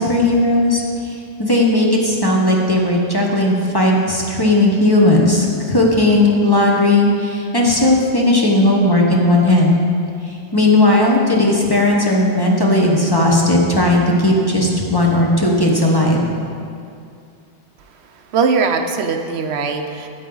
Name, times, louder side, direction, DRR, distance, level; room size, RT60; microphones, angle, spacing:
voice 1, 0.0-9.8 10.5-16.3, left 1 dB, 20° left, -2 dB, 0.9 m, -15 dB
voice 2, 18.3-20.1, right 5 dB, 75° right, 6 dB, 0.8 m, -20 dB
9.1 x 8.4 x 3.9 m, 2.4 s
omnidirectional pair, 1.1 m